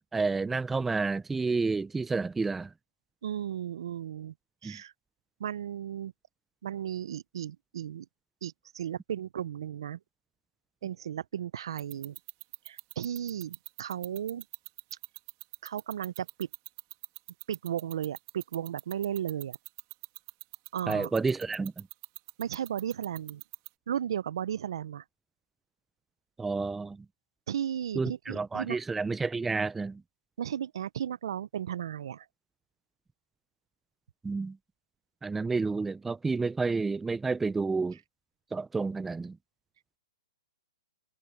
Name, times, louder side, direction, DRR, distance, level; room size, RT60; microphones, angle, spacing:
voice 1, 0.1-2.7 4.6-4.8 20.9-21.8 26.4-27.0 27.9-30.0 34.2-34.6 35.2-38.0 38.5-39.4, right 4 dB, 5° right, 0.4 m, -30 dB
voice 2, 3.2-4.3 4.6-4.9 5.4-6.1 6.6-8.0 8.4-10.0 10.8-12.2 12.7-14.4 15.6-16.5 17.5-19.6 20.7-21.1 22.4-23.4 23.9-25.0 27.5-28.8 30.4-32.2, right 9 dB, 65° right, 0.6 m, -35 dB
sound 1, 11.8-23.7, right 24 dB, 35° right, 2.2 m, -41 dB
hypercardioid pair, 155°, 3 cm